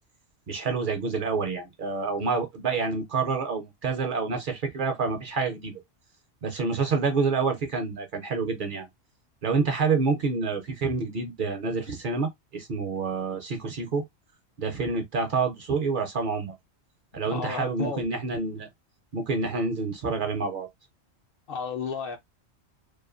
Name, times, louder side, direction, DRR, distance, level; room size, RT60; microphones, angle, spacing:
voice 1, 0.5-5.8 6.4-8.9 9.4-14.0 14.6-16.5 17.1-18.7 19.1-20.7, right 4 dB, 55° right, 0.6 m, -28 dB
voice 2, 17.3-18.0 21.5-22.2, left 5 dB, 60° left, 0.7 m, -32 dB
2.5 x 2.4 x 2.4 m
omnidirectional pair, 1.2 m